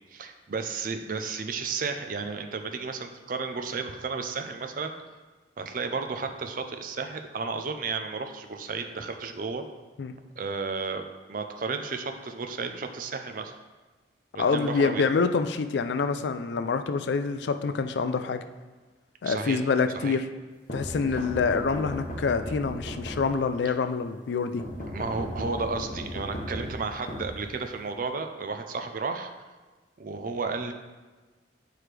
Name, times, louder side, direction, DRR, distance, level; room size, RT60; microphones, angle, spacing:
voice 1, 0.1-5.0 5.6-9.6 10.4-13.5 14.3-15.1 19.2-19.6 19.9-20.2 24.9-29.3 30.0-30.7, right 4 dB, 50° right, 6 dB, 0.5 m, -33 dB
voice 2, 14.4-18.4 19.2-20.2 20.7-24.6, left 5 dB, 70° left, 9 dB, 0.4 m, -26 dB
sound 1, 20.7-23.6 24.6-27.9, equal, 45° left, 1.1 m, -37 dB
7.7 x 4.7 x 3.3 m, 1.3 s
head